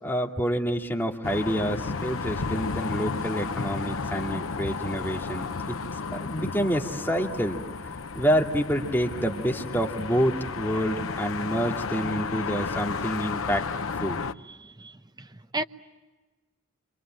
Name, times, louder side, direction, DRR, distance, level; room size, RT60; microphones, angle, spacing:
voice 1, 0.0-5.8 6.1-7.6 8.1-13.6 14.0-14.2, equal, 10° left, 2.5 m, -27 dB
sound 1, 1.2-14.3, left 4 dB, 75° left, 0.9 m, -33 dB
voice 2, 14.5-15.3 15.5-15.6, right 2 dB, 20° right, 0.9 m, -34 dB
29.5 x 26.0 x 7.6 m
head